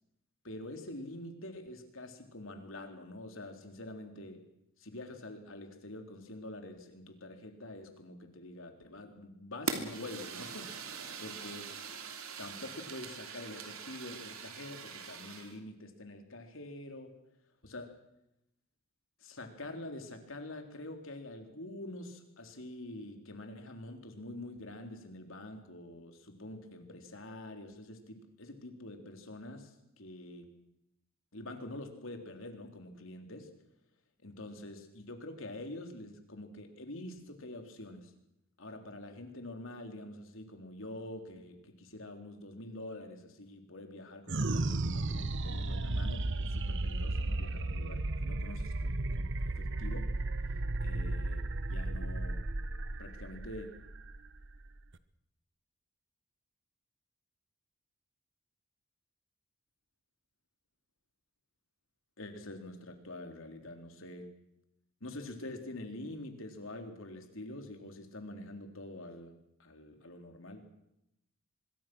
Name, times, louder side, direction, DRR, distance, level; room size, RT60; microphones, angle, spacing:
voice 1, 0.4-4.5 4.8-11.8 12.4-17.2 17.6-18.0 19.2-30.5 31.3-33.5 34.2-38.1 38.6-50.2 50.5-52.5 53.0-53.7 62.2-64.3 65.0-69.3 69.6-70.7, left 1 dB, 65° left, 5 dB, 3.7 m, -46 dB
Fire, 9.7-15.6, right 5 dB, 85° right, 3.0 m, -42 dB
sound 1, 44.3-55.0, right 2 dB, 60° right, 1.1 m, -34 dB
24.5 x 22.5 x 6.3 m, 0.82 s
head